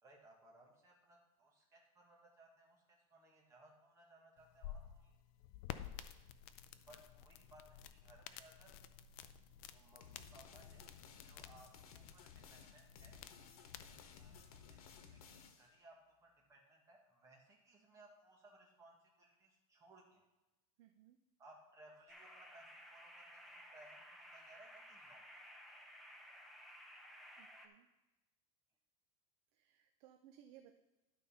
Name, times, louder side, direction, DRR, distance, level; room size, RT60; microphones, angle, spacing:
voice 1, 0.0-5.2 6.9-8.8 9.7-13.2 13.7-15.9 16.2-20.2 21.4-25.3, right 2 dB, 15° right, -1 dB, 1.7 m, -64 dB
sound 1, 4.4-15.0, left 11 dB, 45° left, 0.4 m, -53 dB
sound 2, 10.0-15.7, left 6 dB, 80° left, 1.2 m, -59 dB
voice 2, 20.8-21.2 27.4-27.9 29.5-30.8, right 10 dB, 45° right, 5 dB, 0.6 m, -63 dB
sound 3, 22.1-27.7, equal, ahead, 0.6 m, -57 dB
11.5 x 4.1 x 5.6 m, 1.0 s
supercardioid pair, 165°, 19 cm